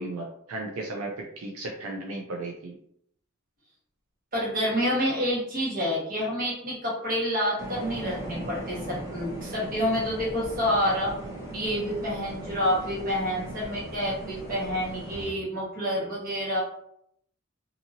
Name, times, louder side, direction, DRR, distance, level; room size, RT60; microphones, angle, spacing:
voice 1, 0.0-2.8, right 2 dB, 80° right, 0 dB, 0.4 m, -35 dB
voice 2, 4.3-11.2 11.5-16.6, equal, 40° right, -5 dB, 1.2 m, -28 dB
sound 1, 7.6-15.3, right 1 dB, 15° right, 0.8 m, -38 dB
2.7 x 2.7 x 2.6 m, 0.72 s
head